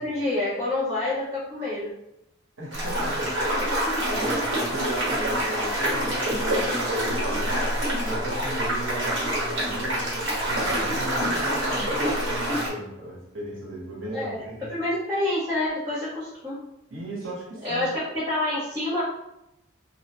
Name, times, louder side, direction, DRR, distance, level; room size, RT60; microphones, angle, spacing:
voice 1, 0.0-1.9 4.1-4.2 14.1-16.6 17.6-19.0, left 1 dB, 15° right, -11 dB, 0.7 m, -28 dB
voice 2, 2.6-7.8 8.0-14.7 16.9-17.9, right 1 dB, 85° right, -3 dB, 0.9 m, -36 dB
sound 1, 2.7-12.7, equal, 65° right, 1.1 m, -26 dB
2.4 x 2.0 x 2.8 m, 0.84 s
head